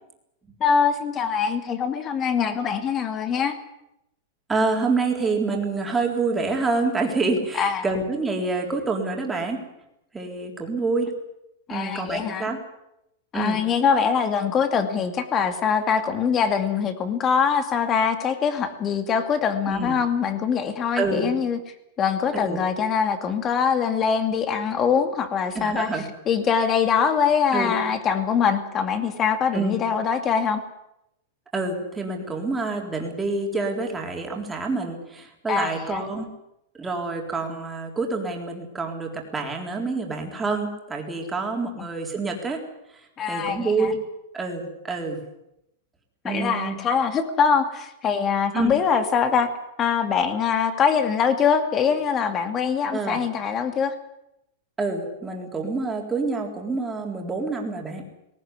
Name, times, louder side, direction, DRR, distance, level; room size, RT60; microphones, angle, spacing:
voice 1, 0.6-3.6 7.6-7.8 11.7-12.5 13.3-21.6 22.0-25.9 26.3-30.6 35.5-36.0 43.2-43.9 46.2-49.5 49.8-53.9, left 6 dB, 20° left, 8 dB, 2.3 m, -23 dB
voice 2, 4.5-9.6 10.1-11.1 11.7-12.6 13.3-13.6 19.7-20.0 21.0-21.3 22.3-22.6 25.5-26.0 27.5-27.8 29.5-29.8 31.5-36.3 36.8-42.6 43.3-44.0 44.3-45.2 46.2-46.8 48.5-48.8 52.9-53.2 54.8-58.0, right 3 dB, 10° right, 1 dB, 3.9 m, -27 dB
19.0 x 18.5 x 9.7 m, 0.84 s
supercardioid pair, 160°, 0 cm